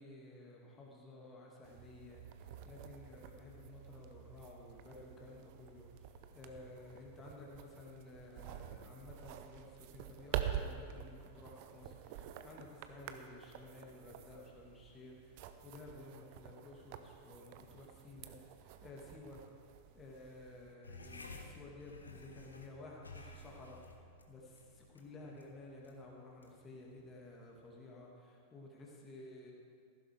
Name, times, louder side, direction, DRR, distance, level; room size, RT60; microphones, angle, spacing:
voice 1, 0.0-19.4 19.9-29.5, left 2 dB, 20° left, -2 dB, 2.0 m, -54 dB
sound 1, 1.6-20.7, right 10 dB, 45° right, 0.7 m, -47 dB
sound 2, 20.8-27.7, left 2 dB, 80° left, 1.1 m, -54 dB
15.0 x 12.5 x 3.4 m, 2.4 s
figure-of-eight pair, 90°, 0 cm